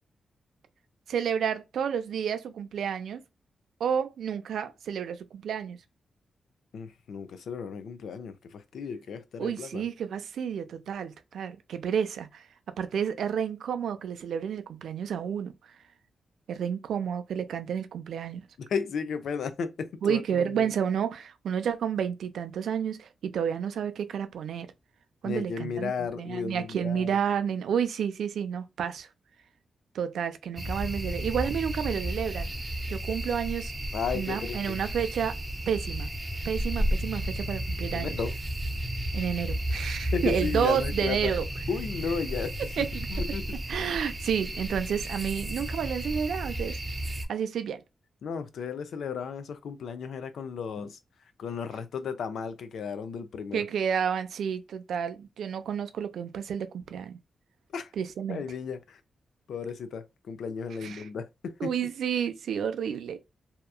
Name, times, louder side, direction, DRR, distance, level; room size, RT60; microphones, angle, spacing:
voice 1, 1.1-3.2 3.8-5.8 9.4-12.4 12.8-15.7 16.5-18.5 20.0-24.7 25.2-29.1 29.9-32.5 32.9-33.7 34.1-35.4 35.7-36.1 36.4-38.2 39.1-41.5 42.6-43.1 43.7-46.8 47.3-47.8 53.5-57.2 58.0-58.4 60.8-61.1 61.6-63.2, right 8 dB, 90° right, 0.4 m, -30 dB
voice 2, 6.7-9.8 18.6-20.7 25.2-27.1 33.9-34.8 37.9-38.3 40.1-41.3 41.7-42.5 43.1-43.4 48.2-51.0 51.4-53.6 57.7-57.9 58.3-59.0 59.5-61.7, left 6 dB, 80° left, 0.5 m, -34 dB
sound 1, 30.6-47.3, right 1 dB, 20° right, 0.5 m, -33 dB
2.8 x 2.3 x 2.3 m
wide cardioid pair, 125°, 0 cm